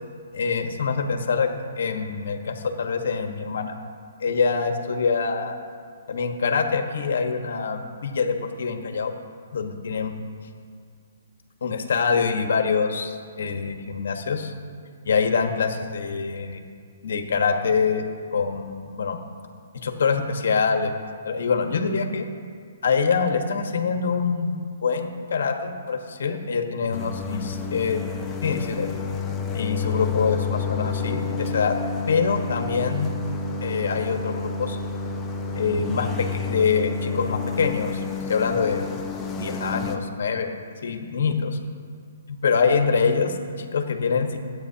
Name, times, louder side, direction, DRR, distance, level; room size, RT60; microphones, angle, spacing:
voice 1, 0.3-1.5 1.8-3.7 4.2-5.6 6.1-9.1 9.5-10.1 11.6-14.5 15.0-16.6 17.0-18.0 18.3-19.2 19.7-20.9 21.2-22.2 22.8-28.0 28.4-28.9 29.5-31.8 32.1-33.1 33.6-34.8 35.5-38.9 39.3-40.6 40.8-41.6 42.3-44.4, left 5 dB, 70° left, 5 dB, 1.4 m, -25 dB
sound 1, 26.9-40.0, left 4 dB, 10° left, 1.0 m, -30 dB
23.5 x 8.8 x 2.9 m, 2.2 s
hypercardioid pair, 155°, 0 cm